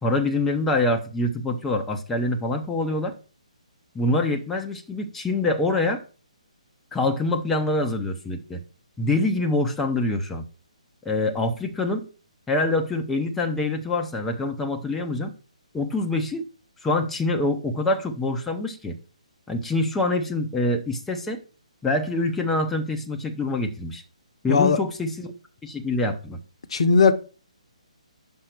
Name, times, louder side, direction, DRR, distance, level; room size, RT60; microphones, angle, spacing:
voice 1, 0.0-3.1 3.9-6.0 6.9-8.6 9.0-10.5 11.0-12.1 12.5-15.3 15.7-16.5 16.8-19.0 19.5-21.4 21.8-24.0 24.4-25.3 25.6-26.4, left 2 dB, 5° left, 0.7 m, -25 dB
voice 2, 24.5-24.8 26.7-27.1, left 5 dB, 50° left, 0.8 m, -17 dB
5.8 x 5.2 x 6.4 m
figure-of-eight pair, 135°, 4 cm